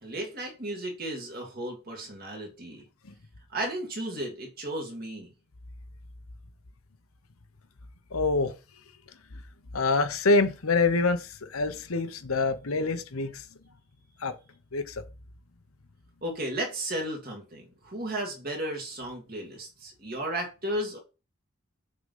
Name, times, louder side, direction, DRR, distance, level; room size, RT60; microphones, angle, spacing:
voice 1, 0.0-2.8 3.5-5.3 16.2-21.0, right 1 dB, 45° right, 2.0 m, -34 dB
voice 2, 8.1-8.6 9.3-9.4 9.7-13.5 14.2-14.4 14.7-15.0, left 3 dB, 85° left, 1.0 m, -26 dB
6.4 x 3.9 x 5.4 m
head